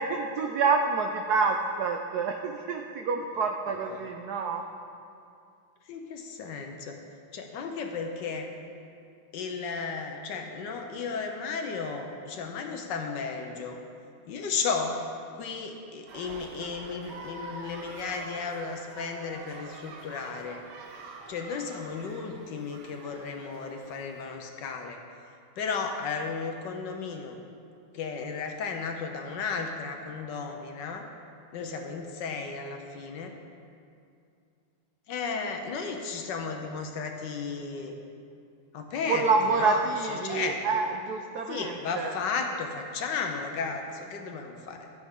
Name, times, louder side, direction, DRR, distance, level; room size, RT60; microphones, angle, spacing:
voice 1, 0.0-4.6 39.1-42.1, right 4 dB, 90° right, 4 dB, 0.8 m, -27 dB
voice 2, 5.9-7.0 7.3-8.5 9.3-13.8 14.3-15.0 15.3-20.6 21.3-25.0 25.6-27.4 27.9-31.1 31.5-33.3 35.1-37.9 38.7-39.2 39.5-39.8 40.1-40.6 41.5-44.9, left 5 dB, 70° left, 4 dB, 1.2 m, -34 dB
sound 1, 16.1-24.4, right 3 dB, 60° right, 1.2 m, -46 dB
12.0 x 9.3 x 3.7 m, 2.4 s
omnidirectional pair, 2.3 m